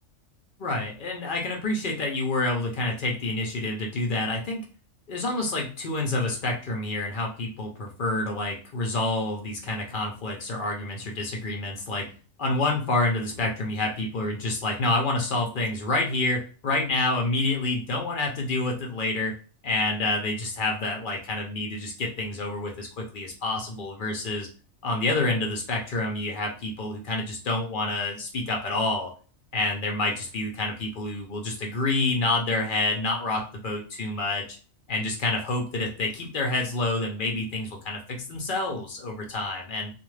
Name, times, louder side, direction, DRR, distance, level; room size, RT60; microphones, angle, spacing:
voice 1, 0.6-4.6 5.1-12.1 12.4-19.3 19.6-24.5 24.8-29.1 29.5-34.4 34.9-39.9, left 2 dB, 50° left, 1 dB, 0.6 m, -28 dB
2.5 x 2.4 x 3.1 m, 0.37 s
omnidirectional pair, 1.4 m